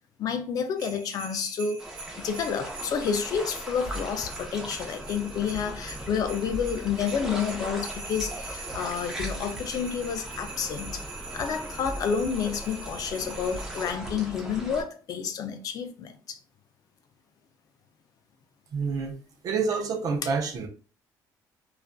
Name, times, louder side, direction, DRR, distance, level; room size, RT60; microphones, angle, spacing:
voice 1, 0.2-1.8 2.2-11.0 11.3-16.4, left 7 dB, 55° left, 0.4 m, -30 dB
sound 1, 0.8-13.9, right 4 dB, 90° right, 0.7 m, -44 dB
sound 2, 1.8-14.8, equal, 5° right, 0.6 m, -39 dB
sound 3, 3.9-4.3 5.5-5.7 6.0-6.1 6.5-7.0 8.2-8.4 8.7-8.8 9.2-9.6 10.9-11.1 11.4-11.5 11.8-12.3 13.5-13.7 14.0-14.1, equal, 25° right, 1.0 m, -39 dB
voice 2, 18.7-19.2 19.4-20.7, right 5 dB, 55° right, 0.6 m, -28 dB
2.4 x 2.3 x 2.2 m
cardioid pair, 115°, 8 cm